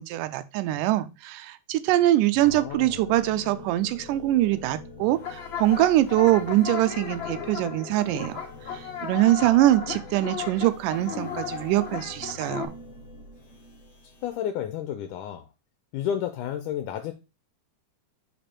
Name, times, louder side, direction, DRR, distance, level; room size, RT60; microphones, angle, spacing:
voice 1, 0.0-8.4 9.0-12.7, right 15 dB, 85° right, 2.2 m, -23 dB
sound 1, 2.3-14.3, left 3 dB, 30° left, 1.3 m, -45 dB
voice 2, 2.4-3.1 14.2-15.5 15.9-17.1, left 9 dB, 80° left, 2.1 m, -31 dB
sound 2, 5.1-12.7, left 7 dB, 50° left, 1.5 m, -35 dB
5.2 x 5.1 x 4.3 m
omnidirectional pair, 3.7 m